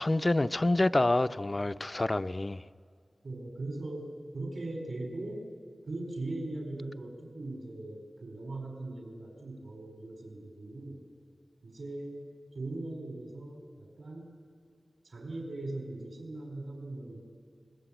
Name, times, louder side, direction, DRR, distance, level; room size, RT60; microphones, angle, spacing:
voice 1, 0.0-2.6, left 2 dB, 30° left, 0.6 m, -27 dB
voice 2, 3.2-5.5 5.8-11.1 11.6-12.2 12.5-14.4 15.0-17.2, right 2 dB, 80° right, 4.6 m, -40 dB
26.5 x 21.0 x 9.1 m
wide cardioid pair, 75°, 0 cm